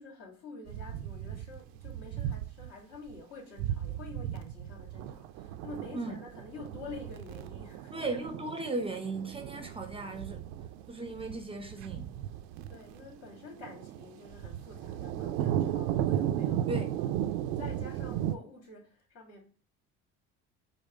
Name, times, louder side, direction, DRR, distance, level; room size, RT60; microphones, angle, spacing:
voice 1, 0.0-7.9 9.1-9.3 12.7-17.1 17.5-19.5, left 3 dB, 55° left, 2.2 m, -48 dB
sound 1, 0.7-2.7 3.1-3.2 3.6-18.4, right 11 dB, 85° right, 0.5 m, -35 dB
voice 2, 7.9-10.5 10.9-12.2 16.7-16.9, right 2 dB, 20° right, 0.6 m, -36 dB
5.1 x 2.1 x 3.6 m
supercardioid pair, 90°, 29 cm